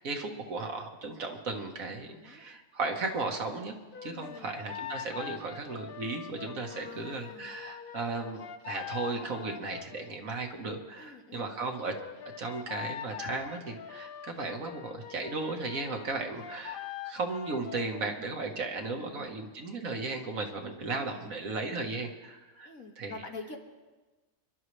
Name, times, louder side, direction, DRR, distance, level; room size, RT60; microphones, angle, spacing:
voice 1, 0.0-3.7 4.0-11.9 12.4-23.2, right 3 dB, 70° right, 3 dB, 1.8 m, -36 dB
voice 2, 2.0-2.5 4.1-4.6 6.7-7.6 11.0-11.6 19.0-19.5 20.8-21.3 22.7-23.6, left 3 dB, 75° left, 2 dB, 2.1 m, -47 dB
sound 1, 3.9-10.1 11.9-18.1, left 9 dB, 55° left, 0.6 m, -43 dB
27.0 x 11.5 x 3.3 m, 1.2 s
omnidirectional pair, 1.5 m